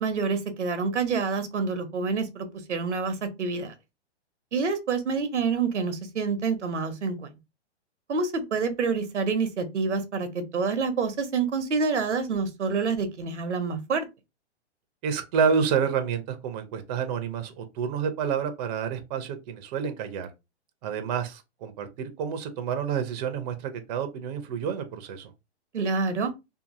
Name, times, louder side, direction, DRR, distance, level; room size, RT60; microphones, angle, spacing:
voice 1, 0.0-3.7 4.5-7.3 8.1-14.0 25.7-26.3, right 4 dB, 90° right, 0.8 m, -27 dB
voice 2, 15.0-20.3 20.8-25.3, right 6 dB, 35° right, 0.6 m, -29 dB
2.7 x 2.6 x 2.5 m
hypercardioid pair, 125°, 34 cm